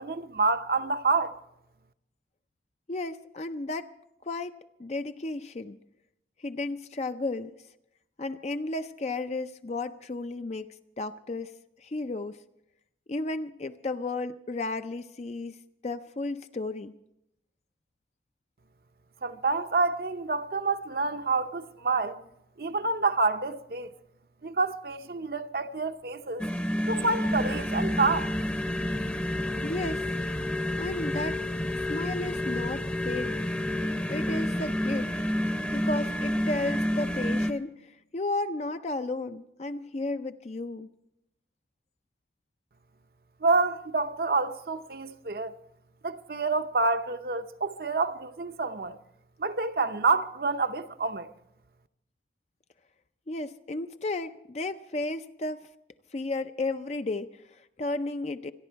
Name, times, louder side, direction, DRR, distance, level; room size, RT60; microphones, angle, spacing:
voice 1, 0.0-1.4 19.2-22.2 22.6-23.9 24.4-26.4 26.9-28.3 43.4-45.6 46.0-49.0 49.4-51.3, right 3 dB, 55° right, 0.7 m, -28 dB
voice 2, 2.9-3.9 4.3-5.8 6.4-7.5 8.2-11.5 11.8-12.4 13.1-15.6 15.8-16.9 29.6-30.0 30.8-31.4 31.9-33.5 34.1-35.1 35.7-40.9 53.3-55.7 56.1-58.5, left 2 dB, 35° left, 0.5 m, -33 dB
sound 1, 26.4-37.5, left 1 dB, 10° left, 0.7 m, -29 dB
26.0 x 11.0 x 4.6 m
head